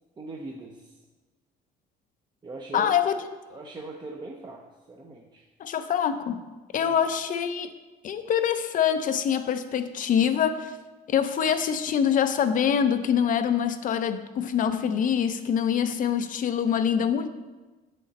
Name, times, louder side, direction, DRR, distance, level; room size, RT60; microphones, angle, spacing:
voice 1, 0.2-1.0 2.4-2.9 3.5-4.6 4.9-5.5 6.8-7.0, right 2 dB, 25° right, 0 dB, 0.8 m, -40 dB
voice 2, 2.7-3.2 5.6-6.4 6.7-7.7 8.0-10.7 11.1-17.3, left 8 dB, 50° left, 9 dB, 0.6 m, -25 dB
8.1 x 6.6 x 4.1 m, 1.2 s
cardioid pair, 110°, 17 cm